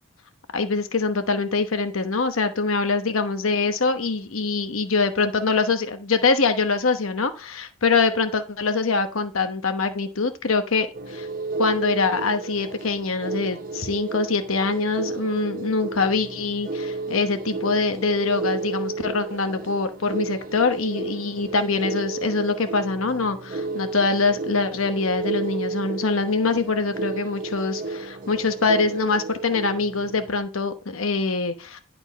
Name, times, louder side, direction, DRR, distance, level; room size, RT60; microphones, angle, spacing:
voice 1, 0.5-11.3 11.6-31.8, left 4 dB, 75° left, 8 dB, 1.0 m, -24 dB
sound 1, 10.9-30.4, right 3 dB, 45° right, 0.9 m, -32 dB
11.0 x 4.4 x 5.2 m, 0.33 s
head